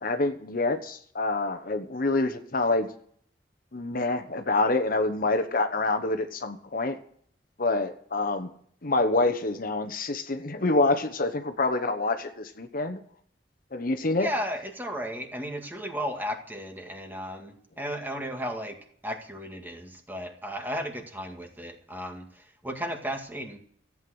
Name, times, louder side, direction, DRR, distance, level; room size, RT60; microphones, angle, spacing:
voice 1, 0.0-2.9 3.7-7.0 7.6-8.5 8.8-13.0 13.7-14.3, left 2 dB, 55° left, 8 dB, 1.1 m, -26 dB
voice 2, 14.2-18.8 19.0-23.6, equal, 10° right, 3 dB, 2.0 m, -34 dB
14.5 x 8.7 x 7.9 m, 0.62 s
head